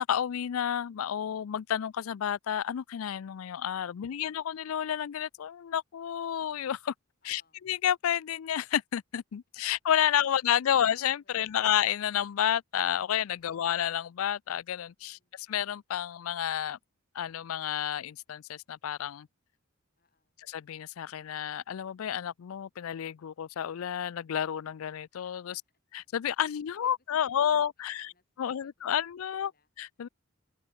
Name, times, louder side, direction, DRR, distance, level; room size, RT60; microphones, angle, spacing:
voice 1, 0.0-6.9 7.3-16.8 17.1-19.3 20.5-25.5 26.1-28.1 28.4-29.5 29.8-30.1, left 9 dB, 80° left, 0.4 m, -30 dB
voice 2, 3.9-4.4 7.2-7.6 13.4-13.7 15.0-15.5 20.0-20.4 25.5-25.8 26.7-29.7, left 4 dB, 45° left, 4.5 m, -71 dB
head